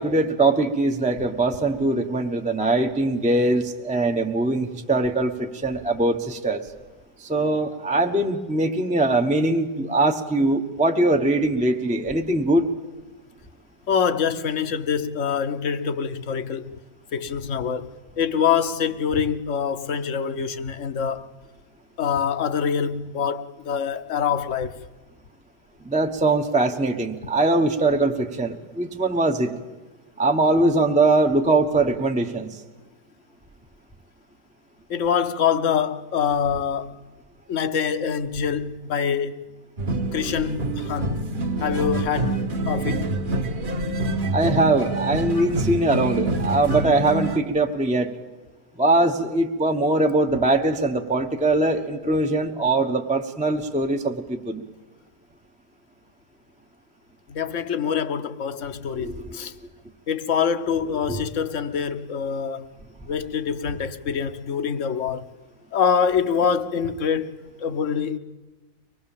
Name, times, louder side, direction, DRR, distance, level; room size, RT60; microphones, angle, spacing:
voice 1, 0.0-6.6 7.2-12.7 25.8-29.5 30.2-32.5 44.3-48.1 48.8-54.6 59.0-59.5 61.1-61.2, right 2 dB, 5° right, 0.8 m, -22 dB
voice 2, 13.9-16.7 17.1-21.3 22.0-24.8 34.9-37.0 37.5-39.5 40.1-41.2 41.6-43.1 57.3-59.5 60.1-62.7 63.1-65.3 65.7-67.3 67.6-68.2, left 7 dB, 55° left, 1.1 m, -25 dB
sound 1, 39.8-47.4, right 2 dB, 35° right, 1.2 m, -26 dB
24.5 x 19.5 x 7.3 m
omnidirectional pair, 1.8 m